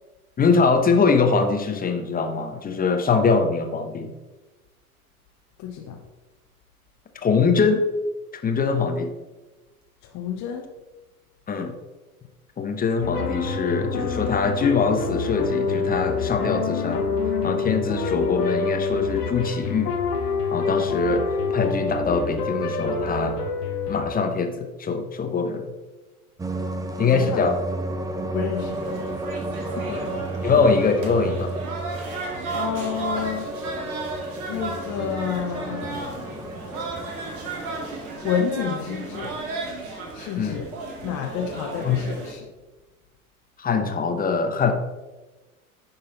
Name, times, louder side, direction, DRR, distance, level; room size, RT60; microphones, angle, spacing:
voice 1, 0.4-4.1 7.2-7.8 8.4-9.1 11.5-11.7 12.6-17.1 17.4-19.9 20.5-21.2 21.5-23.4 23.9-25.7 27.0-27.6 29.9-31.5 40.4-40.6 41.8-42.0 43.6-44.7, left 5 dB, 20° left, 6 dB, 0.9 m, -23 dB
voice 2, 5.6-6.0 10.1-10.6 27.2-27.4 28.3-28.8 29.8-29.9 32.5-33.5 34.5-36.1 38.2-39.3 40.1-40.7 41.0-42.5, left 7 dB, 40° left, 1 dB, 1.0 m, -29 dB
sound 1, 13.0-24.0, left 4 dB, 85° left, 1.1 m, -26 dB
sound 2, 26.4-39.8, right 2 dB, 10° right, 0.5 m, -33 dB
sound 3, 28.6-42.3, right 3 dB, 60° right, 2.1 m, -34 dB
10.5 x 4.0 x 4.0 m, 1.2 s
hypercardioid pair, 85°, 45 cm